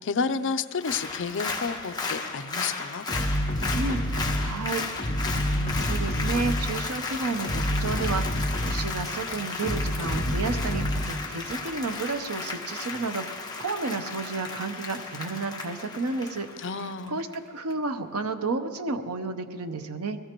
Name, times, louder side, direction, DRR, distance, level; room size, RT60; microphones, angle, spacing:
voice 1, 0.0-3.1 16.6-17.2, left 5 dB, 55° left, 9 dB, 0.5 m, -30 dB
Applause, 0.7-17.3 17.7-17.8, left 4 dB, 20° left, 1.2 m, -35 dB
sound 1, 3.1-4.6 5.0-6.8 7.3-9.0 9.6-11.1, equal, 35° left, 2.5 m, -28 dB
voice 2, 4.4-16.5 17.1-20.2, right 3 dB, 80° right, 8 dB, 0.8 m, -32 dB
22.5 x 17.0 x 3.0 m, 2.1 s
head